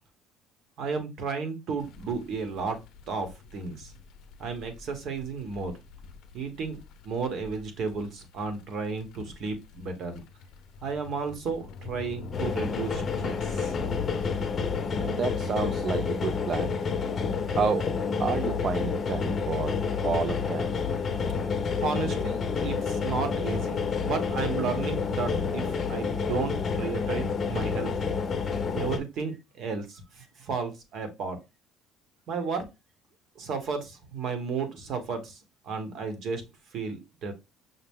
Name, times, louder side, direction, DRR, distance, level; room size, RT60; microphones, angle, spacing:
voice 1, 0.8-2.8 3.1-3.9 4.4-5.7 6.3-6.8 7.0-10.2 10.8-14.0 21.7-28.0 28.7-31.4 32.3-32.7 33.4-35.4 35.6-36.4 36.7-37.3, right 5 dB, 60° right, 1.2 m, -33 dB
sound 1, 1.8-14.9, left 5 dB, 70° left, 0.6 m, -45 dB
sound 2, 12.3-29.0, left 5 dB, 35° left, 0.7 m, -29 dB
voice 2, 15.0-16.7 17.5-17.9 18.2-20.7, right 6 dB, 40° right, 0.4 m, -30 dB
5.7 x 2.1 x 3.5 m
cardioid pair, 125°, 0 cm